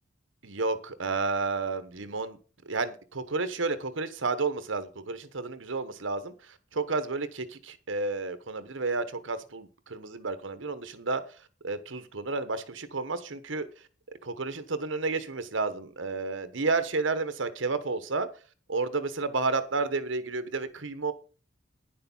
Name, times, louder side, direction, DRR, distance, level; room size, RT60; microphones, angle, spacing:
voice 1, 0.4-2.4 2.6-13.7 14.2-18.3 18.7-21.1, right 3 dB, 75° right, 11 dB, 1.1 m, -31 dB
10.0 x 6.8 x 5.5 m, 0.36 s
head